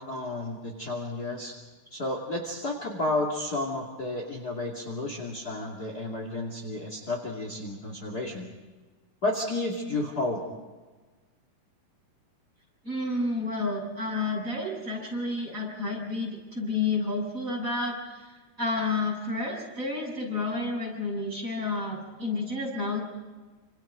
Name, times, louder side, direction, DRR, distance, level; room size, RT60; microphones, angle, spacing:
voice 1, 0.0-1.5 1.9-8.5 9.2-10.4, left 2 dB, 30° left, 1 dB, 2.9 m, -32 dB
voice 2, 12.8-23.0, left 3 dB, 25° right, -1 dB, 7.3 m, -30 dB
28.5 x 27.5 x 5.1 m, 1.3 s
omnidirectional pair, 3.7 m